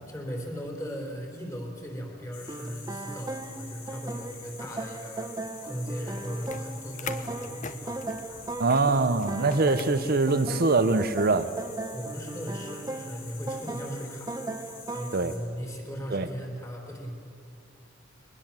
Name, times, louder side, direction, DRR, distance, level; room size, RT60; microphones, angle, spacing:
voice 1, 0.1-5.3 5.6-8.0 11.9-14.4 14.9-17.1, equal, 15° left, 1 dB, 3.9 m, -37 dB
sound 1, 2.3-15.4, left 5 dB, 85° left, 5.7 m, -47 dB
sound 2, 2.5-15.3, right 2 dB, 15° right, 1.0 m, -38 dB
sound 3, 6.2-11.0, left 5 dB, 35° left, 1.0 m, -44 dB
voice 2, 8.6-11.5 15.1-15.3 16.1-16.3, right 3 dB, 45° right, 11 dB, 0.8 m, -23 dB
22.0 x 21.0 x 7.5 m, 2.7 s
head